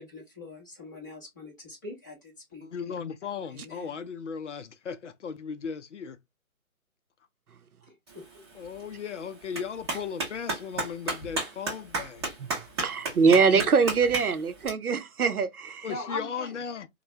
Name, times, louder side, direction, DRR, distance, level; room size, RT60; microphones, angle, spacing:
voice 1, 0.0-2.7 3.5-4.0 7.8-8.4 13.0-13.4 15.9-16.6, left 2 dB, 15° left, 0.6 m, -42 dB
voice 2, 2.6-6.2 8.6-12.3 15.8-16.9, left 6 dB, 55° left, 0.5 m, -36 dB
Clapping, 8.1-14.7, right 3 dB, 20° right, 0.8 m, -35 dB
voice 3, 12.8-15.9, right 5 dB, 80° right, 0.6 m, -23 dB
3.1 x 2.1 x 2.6 m
figure-of-eight pair, 140°, 43 cm